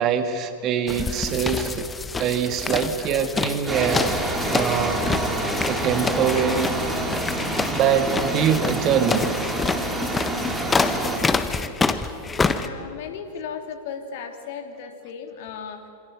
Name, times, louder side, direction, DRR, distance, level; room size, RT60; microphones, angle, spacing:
voice 1, 0.0-1.9 2.2-4.1 4.5-5.0 5.7-6.7 7.7-9.3, right 8 dB, 35° right, 8 dB, 2.2 m, -23 dB
sound 1, 0.9-12.7, left 4 dB, 15° left, 1.3 m, -27 dB
sound 2, 3.7-11.2, right 1 dB, 10° right, 3.8 m, -27 dB
voice 2, 12.5-15.9, left 6 dB, 50° left, 5 dB, 2.9 m, -36 dB
27.0 x 26.5 x 6.8 m, 2.5 s
figure-of-eight pair, 90°, 0 cm